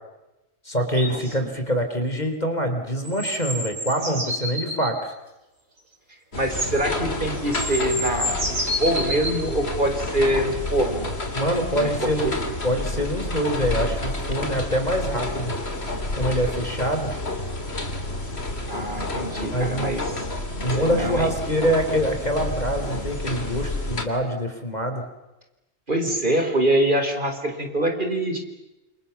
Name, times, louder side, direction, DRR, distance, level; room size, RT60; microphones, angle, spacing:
voice 1, 0.7-5.1 11.3-12.3 12.6-15.5 16.2-17.1 19.5-19.9 20.6-25.0, equal, 30° left, 6 dB, 4.1 m, -25 dB
sound 1, 0.9-1.1 3.0-4.9 6.9-7.0 7.4-9.4 10.5-10.6, equal, 80° right, 5.4 m, -29 dB
sound 2, 6.3-24.1, left 2 dB, 50° left, 3.5 m, -30 dB
voice 2, 6.3-11.1 11.7-12.4 18.7-20.3 20.5-21.3 25.9-28.4, right 1 dB, 40° right, 5 dB, 4.9 m, -24 dB
29.5 x 28.0 x 7.2 m, 0.99 s
omnidirectional pair, 1.4 m